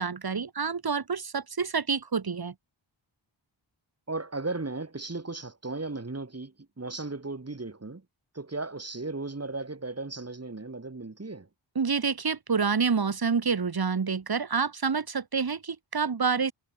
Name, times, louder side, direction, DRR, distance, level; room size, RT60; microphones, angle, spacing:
voice 1, 0.0-2.5 11.8-16.5, right 5 dB, 50° right, 2.1 m, -28 dB
voice 2, 4.1-8.0 8.3-11.5, right 3 dB, 30° right, 3.9 m, -36 dB
wide cardioid pair, 80°, 48 cm